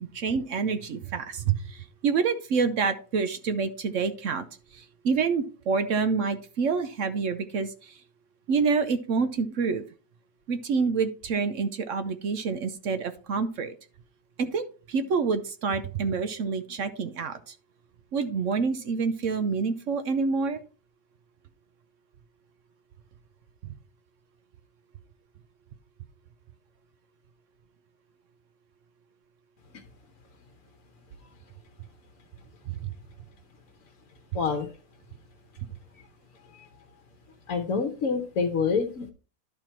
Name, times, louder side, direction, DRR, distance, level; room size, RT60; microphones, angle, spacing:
voice 1, 0.1-4.5 4.7-8.0 8.5-9.8 10.5-13.7 14.4-17.5 18.1-20.6 23.6-23.7 32.8-32.9, right 5 dB, 60° right, 10 dB, 0.9 m, -27 dB
voice 2, 34.3-34.7 36.5-36.7 37.5-39.1, left 5 dB, 65° left, 4 dB, 1.2 m, -27 dB
11.5 x 4.4 x 4.5 m, 0.36 s
omnidirectional pair, 1.6 m